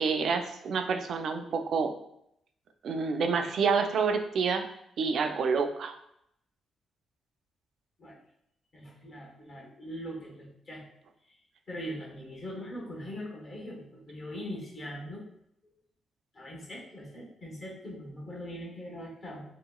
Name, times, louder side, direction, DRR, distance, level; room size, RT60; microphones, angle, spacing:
voice 1, 0.0-1.9 2.8-4.7 5.0-5.9, right 5 dB, 65° right, 6 dB, 0.3 m, -28 dB
voice 2, 8.7-10.8 11.7-15.3 16.3-19.4, equal, 45° left, -3 dB, 1.0 m, -41 dB
2.9 x 2.9 x 2.2 m, 0.76 s
cardioid pair, 110°, 0 cm